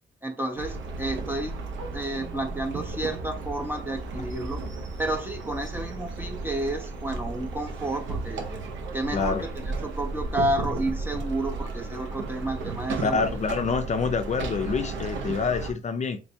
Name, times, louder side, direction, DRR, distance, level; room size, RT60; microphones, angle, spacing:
voice 1, 0.2-1.6 1.9-4.6 5.0-8.5 8.9-9.4 9.8-13.2, right 1 dB, 10° right, 0.6 m, -31 dB
sound 1, 0.6-15.7, right 3 dB, 70° right, 0.7 m, -34 dB
voice 2, 9.1-9.5 13.0-16.2, left 5 dB, 35° left, 0.4 m, -27 dB
3.3 x 3.1 x 2.7 m
cardioid pair, 90°, 20 cm